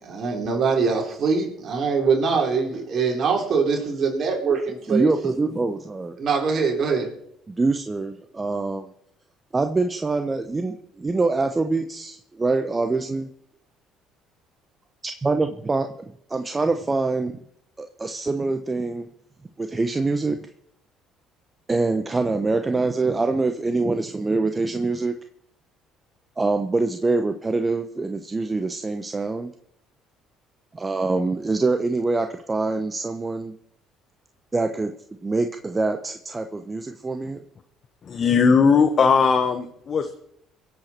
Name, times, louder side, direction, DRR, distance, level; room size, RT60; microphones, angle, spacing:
voice 1, 0.0-5.1 6.2-7.1, right 5 dB, 50° right, 1 dB, 4.1 m, -23 dB
voice 2, 4.9-6.2 7.5-8.9 9.5-13.3 15.0-15.9 16.3-17.3 17.8-19.1 19.6-20.4 21.7-25.1 26.4-29.5 30.7-33.5 34.5-34.9 35.2-37.4, right 3 dB, 25° right, 7 dB, 1.0 m, -24 dB
voice 3, 38.1-40.2, left 5 dB, 45° left, 7 dB, 1.1 m, -18 dB
23.5 x 8.0 x 4.5 m, 0.71 s
hypercardioid pair, 65°, 0 cm